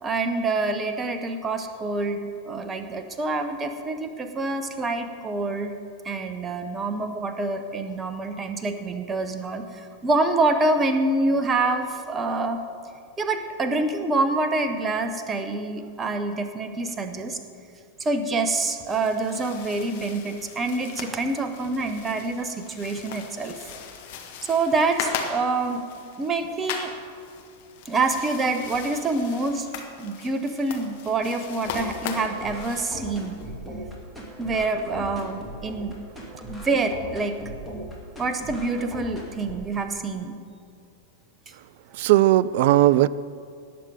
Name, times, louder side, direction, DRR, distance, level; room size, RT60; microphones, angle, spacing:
voice 1, 0.0-5.7 6.0-12.6 13.2-17.4 18.0-23.7 24.4-25.8 26.2-26.9 27.8-29.7 30.0-33.4 34.4-36.0 36.5-37.4 38.2-40.4, right 3 dB, 20° right, 8 dB, 1.0 m, -26 dB
sound 1, 18.7-33.5, left 6 dB, 50° left, 1.5 m, -39 dB
sound 2, 31.7-39.6, equal, ahead, 2.5 m, -38 dB
voice 2, 42.0-43.1, right 15 dB, 50° right, 19 dB, 0.3 m, -17 dB
18.5 x 7.6 x 5.1 m, 2.4 s
figure-of-eight pair, 90°, 0 cm